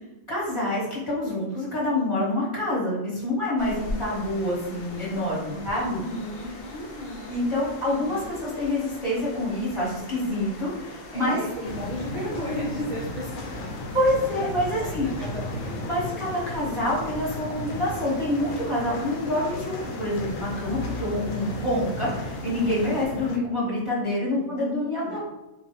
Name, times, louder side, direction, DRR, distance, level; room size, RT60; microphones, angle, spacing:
voice 1, 0.3-6.0 7.3-11.4 13.9-15.1 15.9-25.2, left 1 dB, 25° left, -8 dB, 1.2 m, -27 dB
sound 1, 3.6-23.1, left 2 dB, 55° left, 0.7 m, -42 dB
voice 2, 5.5-7.5 7.8-8.2 11.1-13.7 14.8-15.8 24.3-25.2, equal, 45° right, -4 dB, 0.4 m, -35 dB
sound 2, 11.6-23.4, left 2 dB, 90° left, 1.0 m, -35 dB
3.8 x 2.2 x 2.8 m, 0.99 s
omnidirectional pair, 1.4 m